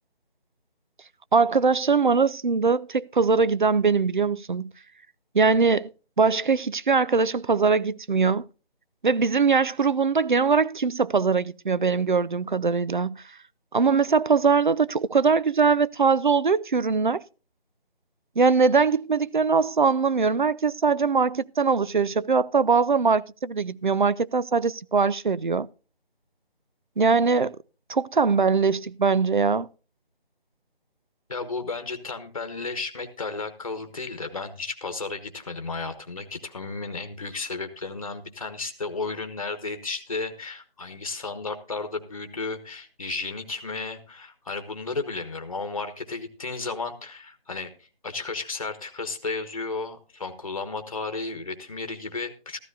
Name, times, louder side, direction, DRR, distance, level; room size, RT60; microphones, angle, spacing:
voice 1, 1.3-4.7 5.3-5.9 6.2-8.5 9.0-13.2 13.7-17.2 18.4-25.7 27.0-27.6 27.9-29.7, right 5 dB, 55° right, 0.4 m, -22 dB
voice 2, 31.3-47.7 48.0-52.6, left 3 dB, 35° left, 1.2 m, -33 dB
14.5 x 13.0 x 2.7 m
figure-of-eight pair, 175°, 30 cm